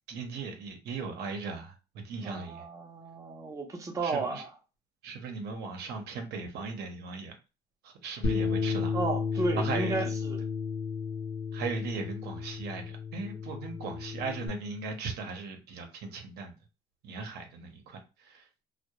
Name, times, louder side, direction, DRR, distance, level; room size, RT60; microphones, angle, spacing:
voice 1, 0.1-1.7 2.0-2.6 4.0-4.4 5.0-7.3 7.8-9.0 9.5-10.0 11.5-16.5 17.0-18.0 18.3-18.4, right 4 dB, 75° right, 0.7 m, -38 dB
voice 2, 2.2-4.5 8.9-10.5, right 3 dB, 20° right, 0.6 m, -33 dB
Bass guitar, 8.2-14.5, left 5 dB, 65° left, 0.8 m, -33 dB
2.2 x 2.1 x 2.8 m
cardioid pair, 110°, 17 cm